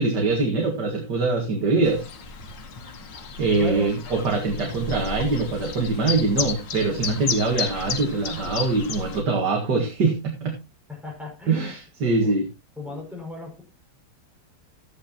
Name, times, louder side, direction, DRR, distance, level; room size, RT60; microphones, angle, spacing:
voice 1, 0.0-2.1 3.4-10.6 11.5-12.5, right 3 dB, 65° right, 1 dB, 2.5 m, -23 dB
Chirp tweet, 1.8-9.2, left 5 dB, 75° left, 2.2 m, -33 dB
voice 2, 3.5-3.9 10.9-11.7 12.0-12.4 12.8-13.6, left 2 dB, ahead, -1 dB, 5.6 m, -36 dB
14.0 x 9.6 x 2.9 m, 0.25 s
omnidirectional pair, 1.9 m